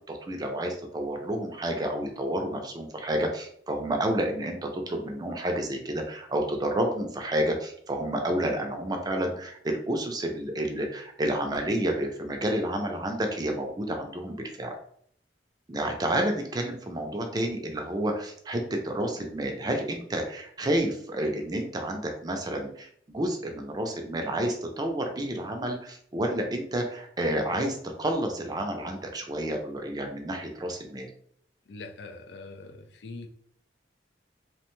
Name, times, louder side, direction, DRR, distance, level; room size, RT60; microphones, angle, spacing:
voice 1, 0.1-14.8 15.7-31.1, right 1 dB, 20° right, 0.4 m, -30 dB
voice 2, 31.7-33.3, left 3 dB, 75° left, 0.4 m, -43 dB
2.9 x 2.1 x 3.0 m
head